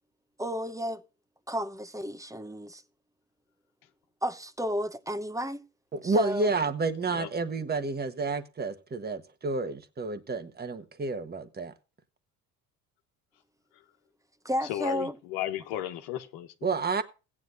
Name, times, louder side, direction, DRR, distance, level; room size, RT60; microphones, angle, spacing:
voice 1, 0.4-1.0 1.5-2.8 4.2-5.6 6.0-6.5 14.4-15.1, equal, 10° right, 0.9 m, -32 dB
voice 2, 5.9-11.7 16.6-17.0, right 3 dB, 25° right, 1.3 m, -30 dB
voice 3, 14.6-16.8, left 12 dB, 85° left, 1.3 m, -35 dB
16.0 x 9.9 x 2.6 m
supercardioid pair, 80°, 38 cm